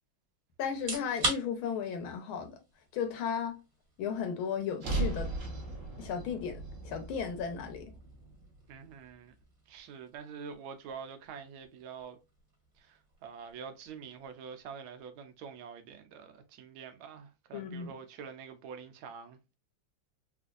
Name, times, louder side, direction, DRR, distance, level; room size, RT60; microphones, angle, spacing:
voice 1, 0.6-2.6 2.9-3.6 4.0-5.3 6.0-7.9 17.5-17.9, left 7 dB, 85° left, 1.7 m, -35 dB
sound 1, 0.7-15.5, right 2 dB, 30° right, 1.7 m, -45 dB
sound 2, 4.8-9.1, right 2 dB, 45° right, 1.2 m, -38 dB
voice 2, 8.7-9.3 9.7-12.2 12.8-19.4, right 6 dB, 80° right, 1.5 m, -46 dB
4.2 x 2.5 x 2.4 m
omnidirectional pair, 2.3 m